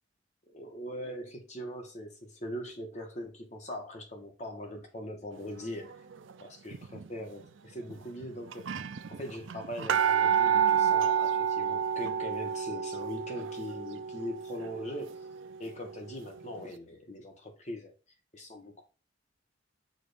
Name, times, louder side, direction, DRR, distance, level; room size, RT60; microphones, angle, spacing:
voice 1, 0.5-6.0 6.4-8.6 9.1-15.3 15.6-18.0 18.3-18.8, equal, 35° left, 1.5 m, -41 dB
sound 1, 6.7-7.1 7.9-8.0 8.2-8.3 8.5-16.1 16.6-16.7, right 8 dB, 80° right, 0.5 m, -29 dB
6.8 x 3.0 x 5.1 m
head